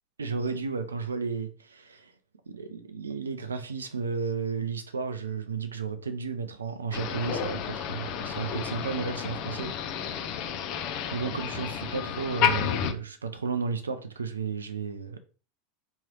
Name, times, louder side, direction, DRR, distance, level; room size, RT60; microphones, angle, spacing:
voice 1, 0.2-2.1 2.5-9.7 10.1-10.3 11.1-15.2, right 5 dB, 80° right, 0.5 m, -33 dB
Motor vehicle (road), 6.9-12.9, left 8 dB, 50° left, 0.5 m, -31 dB
3.6 x 3.0 x 3.0 m
figure-of-eight pair, 85°, 0 cm